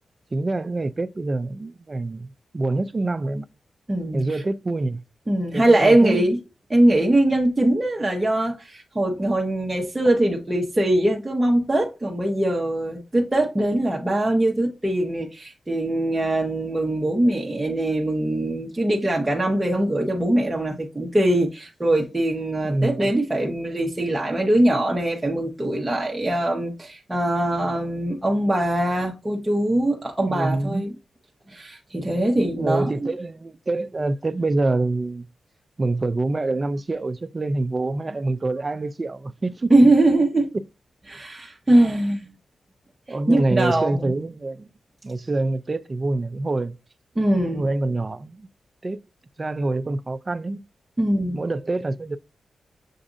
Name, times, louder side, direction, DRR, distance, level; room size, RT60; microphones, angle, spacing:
voice 1, 0.3-3.5 4.1-5.0 5.5-6.3 22.6-23.1 30.2-30.8 32.6-35.2 35.8-39.7 43.1-44.7 45.0-46.7 47.5-48.5 48.8-49.0 49.4-50.6 51.3-52.2, right 2 dB, 30° right, 0.3 m, -26 dB
voice 2, 3.9-4.4 5.3-6.4 6.7-30.9 31.5-33.1 39.7-40.5 41.1-42.3 43.3-44.1 47.2-47.7 51.0-51.4, right 1 dB, 15° right, 0.9 m, -22 dB
7.0 x 2.6 x 2.5 m
cardioid pair, 85°, 0 cm